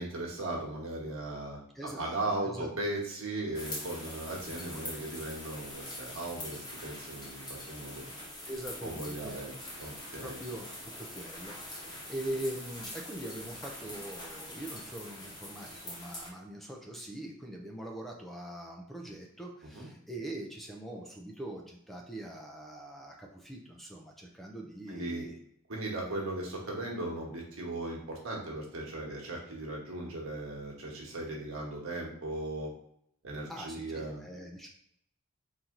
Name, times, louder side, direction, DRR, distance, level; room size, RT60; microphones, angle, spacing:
voice 1, 0.0-8.1 8.8-9.5 9.8-10.4 19.7-19.9 24.9-25.3 25.7-32.7 33.2-34.2, right 2 dB, 85° right, -1 dB, 1.3 m, -37 dB
voice 2, 1.7-2.7 8.5-9.4 10.2-25.4 33.5-34.7, right 1 dB, ahead, 0 dB, 0.5 m, -42 dB
sound 1, 3.5-16.3, left 1 dB, 20° left, 1.1 m, -44 dB
4.4 x 2.8 x 3.7 m, 0.71 s
head